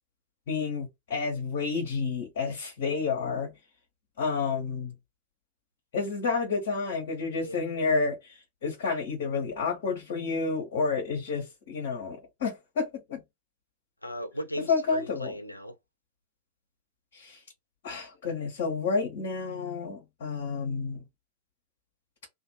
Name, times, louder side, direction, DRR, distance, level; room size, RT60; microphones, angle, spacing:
voice 1, 0.5-3.5 4.2-4.9 5.9-13.2 14.7-15.3 17.1-17.4 17.8-21.0, left 4 dB, 55° left, 0.9 m, -30 dB
voice 2, 7.4-7.7 14.0-15.7, equal, 85° left, 0.5 m, -37 dB
2.5 x 2.3 x 2.9 m
figure-of-eight pair, 90°, 0 cm